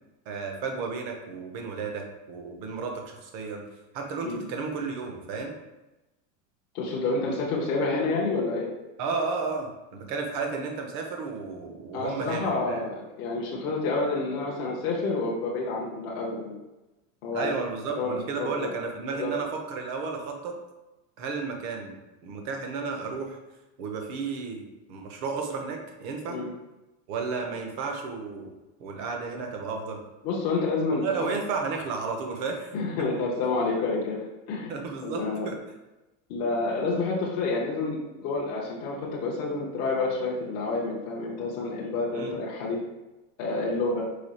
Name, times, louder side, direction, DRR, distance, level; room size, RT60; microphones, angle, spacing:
voice 1, 0.3-3.6 3.9-5.5 9.0-12.8 17.3-20.6 21.2-22.0 22.2-23.4 23.8-26.4 27.1-28.5 28.8-30.0 31.0-32.7 33.0-33.1 34.7-35.6 42.1-42.3, right 4 dB, 40° right, 3 dB, 0.6 m, -33 dB
voice 2, 6.7-8.7 11.9-16.5 17.2-17.5 18.0-18.7 19.2-19.3 26.3-26.5 30.2-31.0 32.7-34.2 34.5-35.5 36.3-42.8 43.4-44.0, left 3 dB, 30° left, -5 dB, 0.5 m, -29 dB
4.9 x 2.3 x 4.1 m, 1.0 s
supercardioid pair, 180°, 40 cm